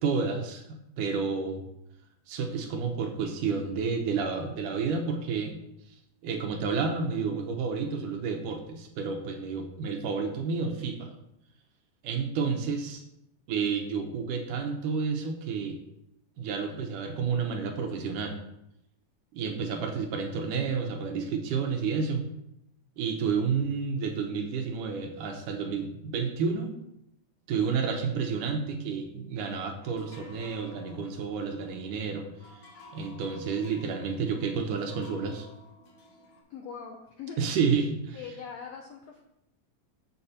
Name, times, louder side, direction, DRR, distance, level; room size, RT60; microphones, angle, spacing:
voice 1, 0.0-1.6 2.3-5.6 6.2-11.1 12.0-13.0 13.5-15.8 16.4-18.4 19.3-22.2 23.0-26.7 27.5-32.6 32.9-35.5 37.4-38.2, right 5 dB, 70° right, 4 dB, 2.3 m, -30 dB
sound 1, 29.8-36.4, left 2 dB, 60° left, 2.6 m, -53 dB
voice 2, 36.5-37.4 38.1-39.2, left 6 dB, 80° left, 2 dB, 1.5 m, -41 dB
8.1 x 7.6 x 4.3 m, 0.81 s
omnidirectional pair, 4.1 m